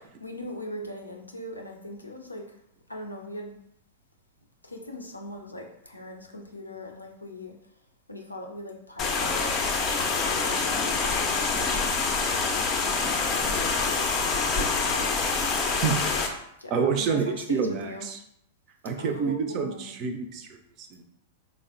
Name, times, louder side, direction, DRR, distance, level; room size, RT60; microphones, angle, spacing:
voice 1, 0.0-2.6 2.9-3.5 4.6-7.6 8.1-11.6 12.3-15.2 16.6-18.1 19.0-19.9, left 1 dB, 90° left, 1 dB, 0.4 m, -40 dB
sound 1, 9.0-16.3, left 4 dB, 30° left, 0.4 m, -26 dB
voice 2, 16.7-18.2 18.8-21.0, right 6 dB, 40° right, 5 dB, 0.4 m, -28 dB
3.3 x 2.0 x 2.5 m, 0.73 s
figure-of-eight pair, 95°, 0 cm